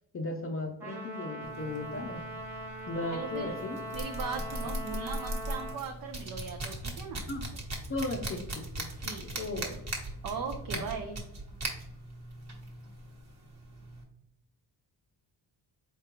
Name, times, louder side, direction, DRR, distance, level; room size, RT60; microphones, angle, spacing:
voice 1, 0.1-2.2 2.9-3.8 4.6-4.7 7.3-7.4 7.9-8.9 9.4-9.6 10.7-10.8, left 2 dB, 30° left, 2 dB, 0.5 m, -36 dB
Trumpet, 0.8-5.8, equal, 5° right, 1.1 m, -41 dB
sound 1, 1.4-14.0, right 1 dB, 35° right, 1.1 m, -40 dB
voice 2, 3.1-3.6 3.9-7.2 9.0-9.8 10.2-11.2, right 5 dB, 50° right, 3 dB, 0.6 m, -39 dB
4.6 x 3.7 x 2.9 m, 0.80 s
cardioid pair, 100°, 45 cm